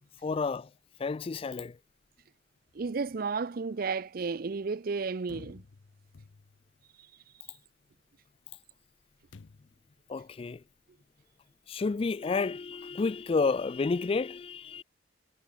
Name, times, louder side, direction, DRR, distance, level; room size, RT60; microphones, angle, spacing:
voice 1, 0.2-0.7 1.0-1.8 10.1-10.6 11.7-14.8, left 4 dB, 30° left, 0.3 m, -30 dB
voice 2, 2.7-5.6, right 4 dB, 50° right, 0.5 m, -32 dB
sound 1, 5.3-6.8 9.3-9.9, left 3 dB, 70° left, 0.6 m, -52 dB
head